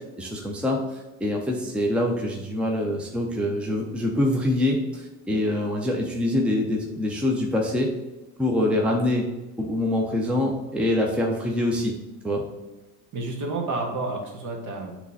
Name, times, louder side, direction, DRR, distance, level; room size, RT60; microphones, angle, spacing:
voice 1, 0.2-7.9 8.4-9.3 9.6-12.0 12.2-12.4, left 1 dB, 5° right, 0 dB, 0.7 m, -25 dB
voice 2, 13.1-14.9, right 2 dB, 50° right, 1 dB, 1.7 m, -30 dB
8.0 x 3.2 x 4.1 m, 1.1 s
supercardioid pair, 100°, 38 cm